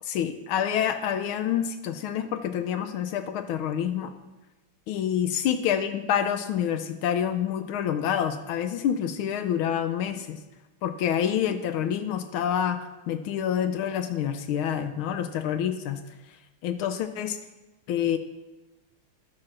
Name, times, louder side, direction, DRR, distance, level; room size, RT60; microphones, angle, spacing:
voice 1, 0.0-4.1 4.9-10.4 10.8-16.0 16.6-17.4 17.9-18.2, left 9 dB, 75° left, 9 dB, 1.4 m, -27 dB
14.0 x 4.7 x 6.1 m, 1.1 s
omnidirectional pair, 2.4 m